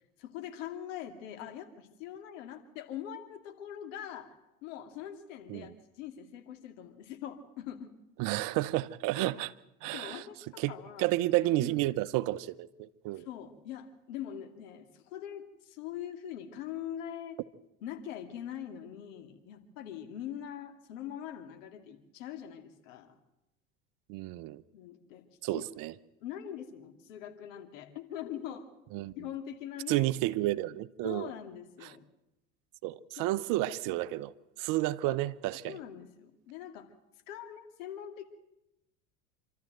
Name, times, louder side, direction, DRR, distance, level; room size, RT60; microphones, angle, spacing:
voice 1, 0.0-4.3 4.6-5.7 6.0-7.9 9.2-9.3 9.9-11.1 11.6-11.8 13.2-17.4 17.8-23.2 24.7-25.2 25.5-25.6 26.2-28.6 29.2-30.1 31.0-32.1 33.2-33.3 33.8-34.0 35.1-35.2 35.6-36.9 37.3-38.2, left 10 dB, 70° left, 2.5 m, -43 dB
voice 2, 8.2-9.5 9.8-10.2 10.6-13.3 24.1-24.6 25.4-25.9 28.9-29.1 29.9-31.3 31.8-31.9 32.8-34.3 34.6-35.8, right 17 dB, 55° right, 0.9 m, -31 dB
27.0 x 13.0 x 7.8 m
hypercardioid pair, 80°, 39 cm